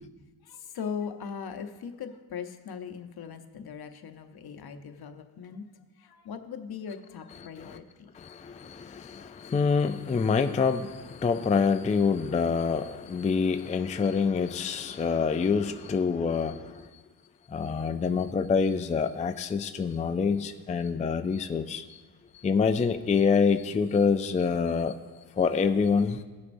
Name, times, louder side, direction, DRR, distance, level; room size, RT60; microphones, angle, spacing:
voice 1, 0.4-5.7 6.0-8.1 9.1-9.3, left 6 dB, 65° left, 7 dB, 0.9 m, -39 dB
voice 2, 7.4-7.8 8.1-16.9 17.5-21.9 22.3-25.0 25.4-26.2, left 5 dB, 20° left, 9 dB, 0.4 m, -26 dB
18.0 x 6.4 x 2.6 m, 1.3 s
cardioid pair, 80°, 41 cm